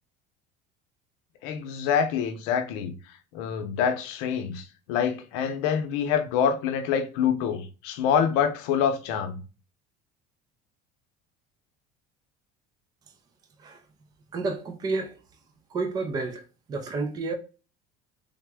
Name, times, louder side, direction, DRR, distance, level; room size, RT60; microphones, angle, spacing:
voice 1, 1.4-2.9 3.3-9.4, left 7 dB, 90° left, 0.7 m, -26 dB
voice 2, 14.3-15.2 15.7-16.4 16.7-17.3, right 3 dB, 20° right, 0.4 m, -30 dB
3.5 x 2.1 x 3.4 m
cardioid pair, 160°, 19 cm